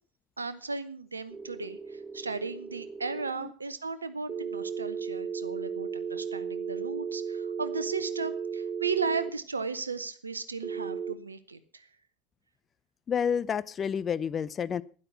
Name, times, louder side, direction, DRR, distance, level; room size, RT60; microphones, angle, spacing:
voice 1, 0.4-11.9, right 4 dB, 90° right, 13 dB, 0.8 m, -35 dB
sound 1, 1.3-3.3 4.3-9.3 10.6-11.1, right 6 dB, 25° right, 1.1 m, -35 dB
voice 2, 13.1-14.8, left 7 dB, 35° left, 17 dB, 0.7 m, -29 dB
12.5 x 10.0 x 5.8 m, 0.39 s
figure-of-eight pair, 75°, 0 cm